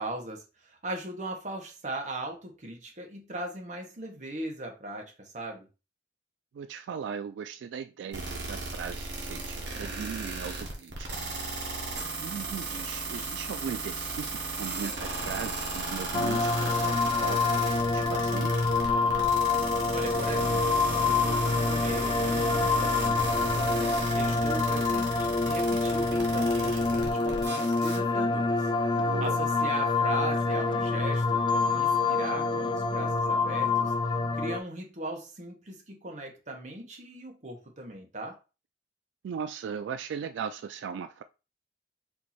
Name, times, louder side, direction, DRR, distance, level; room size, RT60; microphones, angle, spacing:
voice 1, 0.0-5.7 19.9-23.9 24.1-28.7 29.2-33.9 34.3-38.4, right 1 dB, 45° right, 1.2 m, -39 dB
voice 2, 6.5-11.3 12.2-18.5 29.0-29.4 39.2-41.2, right 7 dB, 90° right, 0.3 m, -38 dB
sound 1, 8.1-28.0, right 3 dB, 70° right, 1.4 m, -35 dB
sound 2, 16.1-34.6, left 3 dB, 25° left, 0.4 m, -26 dB
4.5 x 2.7 x 4.3 m
head